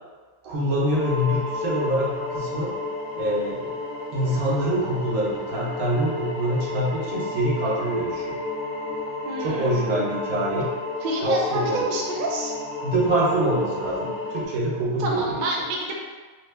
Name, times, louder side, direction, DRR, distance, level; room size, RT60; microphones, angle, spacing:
voice 1, 0.4-2.7 3.1-3.7 4.1-8.4 9.4-10.7 11.2-11.8 12.8-15.4, right 1 dB, 85° right, -5 dB, 1.3 m, -25 dB
sound 1, 0.9-14.5, left 2 dB, 75° left, 1.1 m, -32 dB
voice 2, 9.2-10.1 11.0-12.5 15.0-16.0, right 1 dB, 55° right, -2 dB, 0.5 m, -28 dB
3.6 x 2.1 x 3.4 m, 1.4 s
omnidirectional pair, 1.4 m